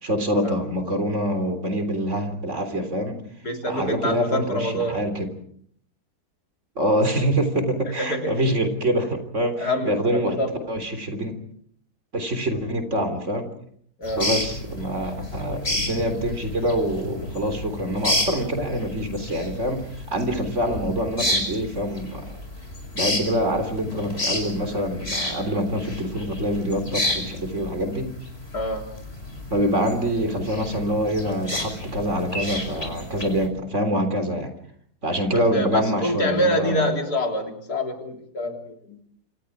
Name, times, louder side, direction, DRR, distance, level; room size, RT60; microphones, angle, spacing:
voice 1, 0.0-3.2 3.7-5.3 6.8-10.4 10.7-11.4 12.1-13.5 14.2-22.3 22.9-28.1 29.5-34.5 35.0-36.8, equal, 50° right, 8 dB, 3.9 m, -25 dB
voice 2, 3.4-5.0 7.9-8.5 9.6-10.6 14.0-14.3 28.5-28.9 35.3-39.0, equal, 80° left, 4 dB, 3.9 m, -26 dB
sound 1, 14.0-33.5, left 1 dB, 40° left, 5.6 m, -31 dB
28.0 x 26.5 x 4.9 m, 0.62 s
omnidirectional pair, 1.6 m